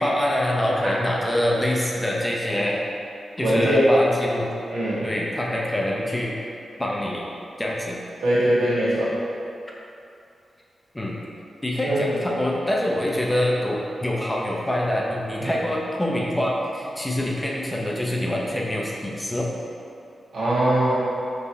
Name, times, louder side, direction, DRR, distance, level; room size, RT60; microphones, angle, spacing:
voice 1, 0.0-2.8 3.4-4.5 5.0-6.3 6.8-7.3 7.6-8.0 10.9-11.2 11.6-19.5, left 1 dB, 15° left, -3 dB, 0.6 m, -25 dB
voice 2, 3.4-3.9 4.7-5.1 8.2-9.1 11.8-12.1 15.4-15.6 20.3-21.0, right 1 dB, 85° right, -10 dB, 1.3 m, -22 dB
3.8 x 2.9 x 4.1 m, 2.6 s
cardioid pair, 70°, 0 cm